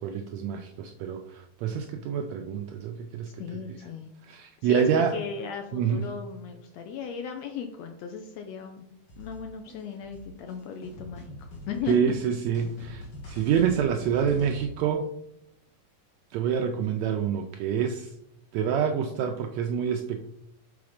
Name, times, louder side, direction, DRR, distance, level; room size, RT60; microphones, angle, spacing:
voice 1, 0.0-3.3 4.2-5.2 5.7-6.0 11.9-15.1 16.3-18.1 18.5-20.3, right 7 dB, 80° right, 5 dB, 1.6 m, -27 dB
voice 2, 3.4-4.1 4.6-4.9 5.1-8.9 9.2-12.1, left 7 dB, 75° left, 4 dB, 1.6 m, -36 dB
sound 1, 9.1-14.7, left 1 dB, 45° left, 1.6 m, -43 dB
6.0 x 4.0 x 4.9 m, 0.78 s
omnidirectional pair, 3.5 m